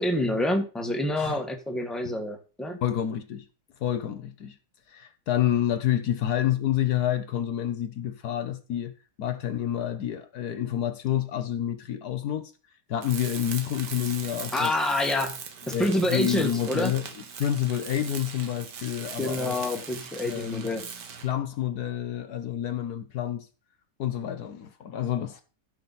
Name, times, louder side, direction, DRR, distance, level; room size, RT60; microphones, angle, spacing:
voice 1, 0.0-2.8 14.5-15.3 15.7-16.9 19.2-20.8, left 1 dB, ahead, 1.4 m, -27 dB
voice 2, 2.8-3.5 3.8-4.6 4.9-12.5 12.9-14.7 15.7-17.0 17.4-19.6 20.2-20.7 21.2-23.5 24.0-25.4, left 11 dB, 65° left, 1.3 m, -28 dB
Tools, 13.0-21.4, right 6 dB, 75° right, 1.9 m, -40 dB
14.5 x 5.9 x 4.1 m
omnidirectional pair, 1.8 m